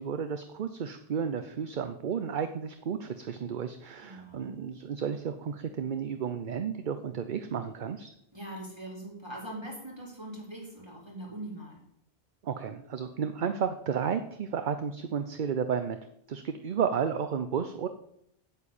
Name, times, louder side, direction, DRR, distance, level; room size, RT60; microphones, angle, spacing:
voice 1, 0.0-8.1 12.4-16.0 16.3-17.9, right 7 dB, 55° right, 9 dB, 0.8 m, -32 dB
voice 2, 4.0-4.6 8.3-11.8, right 1 dB, 25° right, -3 dB, 4.0 m, -42 dB
8.9 x 7.1 x 8.7 m, 0.74 s
omnidirectional pair, 1.0 m